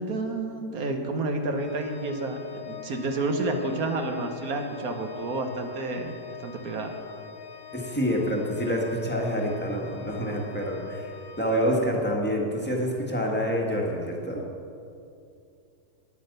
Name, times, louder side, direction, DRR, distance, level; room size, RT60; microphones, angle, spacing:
voice 1, 0.0-6.9, right 2 dB, 65° right, 4 dB, 1.4 m, -30 dB
Organ, 1.6-12.4, left 8 dB, 65° left, 1.2 m, -44 dB
voice 2, 7.7-14.4, equal, 5° left, -2 dB, 1.3 m, -27 dB
9.6 x 8.6 x 6.6 m, 2.5 s
omnidirectional pair, 1.7 m